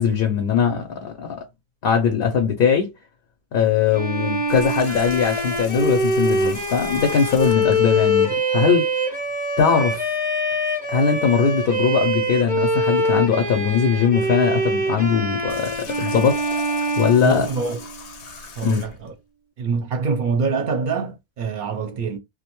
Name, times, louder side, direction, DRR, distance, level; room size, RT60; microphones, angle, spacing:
voice 1, 0.0-1.4 1.8-2.9 3.5-8.9 9.6-10.0 10.9-16.4 17.0-17.5 18.6-18.9, left 6 dB, 65° left, 0.7 m, -20 dB
Bowed string instrument, 3.9-18.0, equal, 10° right, 0.5 m, -24 dB
Water tap faucet, 4.5-7.9 15.3-19.1, left 5 dB, 85° left, 1.0 m, -39 dB
voice 2, 17.2-17.8 18.6-19.1 19.6-22.2, right 5 dB, 55° right, 0.7 m, -25 dB
2.5 x 2.1 x 2.9 m
omnidirectional pair, 1.1 m